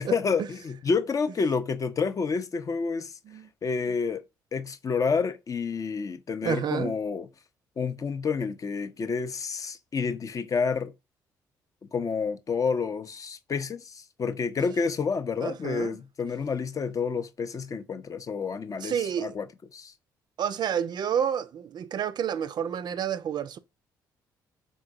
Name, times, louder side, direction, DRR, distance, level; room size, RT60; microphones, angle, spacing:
voice 1, 0.0-3.1 3.6-4.2 4.5-7.3 7.8-10.9 11.9-19.5 19.7-19.9, left 5 dB, 35° left, 0.5 m, -29 dB
voice 2, 6.4-6.9 15.4-15.9 18.8-19.3 20.4-23.6, right 8 dB, 45° right, 0.4 m, -29 dB
3.8 x 3.6 x 2.5 m
figure-of-eight pair, 45°, 10 cm